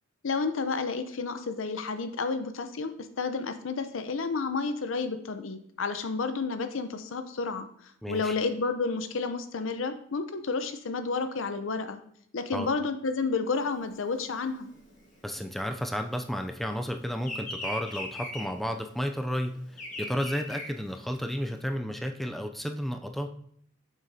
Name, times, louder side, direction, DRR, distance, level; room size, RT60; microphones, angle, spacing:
voice 1, 0.2-12.0 12.3-14.7, left 4 dB, 80° left, 9 dB, 0.6 m, -31 dB
voice 2, 8.0-8.4 12.5-12.7 15.2-23.3, equal, ahead, 4 dB, 0.3 m, -32 dB
Bird vocalization bird call bird song, 13.6-16.5 16.8-21.5, left 1 dB, 40° left, 1.7 m, -39 dB
7.3 x 6.3 x 2.7 m, 0.67 s
head